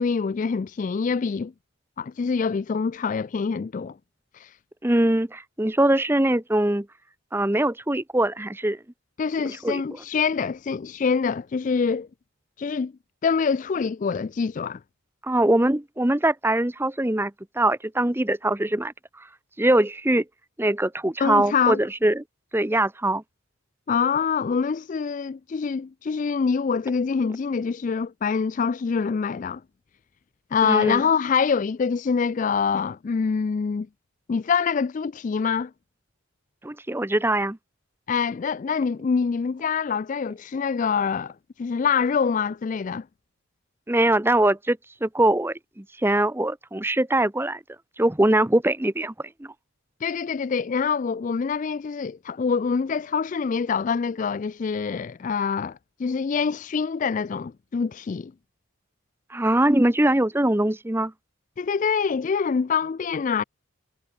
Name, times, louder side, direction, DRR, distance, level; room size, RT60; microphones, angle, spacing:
voice 1, 0.0-1.5 2.0-4.0 4.3-4.5 9.2-12.1 12.6-12.9 13.2-14.8 21.2-21.8 23.9-29.6 30.5-33.9 34.3-35.7 38.1-43.1 50.0-58.3 61.6-63.4, left 5 dB, 35° left, 0.3 m, -25 dB
voice 2, 4.8-6.9 7.3-8.8 9.4-9.8 15.2-18.9 19.6-20.2 20.6-22.2 22.5-23.2 30.6-31.0 36.6-37.6 43.9-47.6 48.0-49.5 59.3-61.1, right 1 dB, 10° right, 0.7 m, -22 dB
head